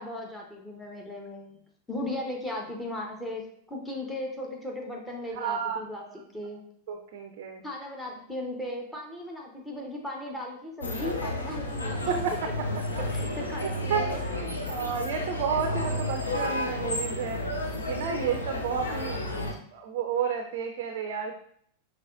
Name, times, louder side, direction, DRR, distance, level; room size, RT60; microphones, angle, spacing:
voice 1, 0.0-1.6 1.9-3.4 3.7-6.0 6.3-6.6 7.6-12.1 13.1-14.2 18.8-19.6, left 1 dB, 5° left, -1 dB, 1.0 m, -37 dB
voice 2, 5.3-6.1 6.9-7.6 12.1-12.3 12.9-13.0 13.5-17.4 17.9-19.2 19.7-21.3, right 7 dB, 50° right, 4 dB, 0.4 m, -31 dB
sound 1, 10.8-19.5, left 1 dB, 75° left, 0.6 m, -32 dB
4.7 x 3.1 x 2.5 m, 0.64 s
figure-of-eight pair, 90°, 0 cm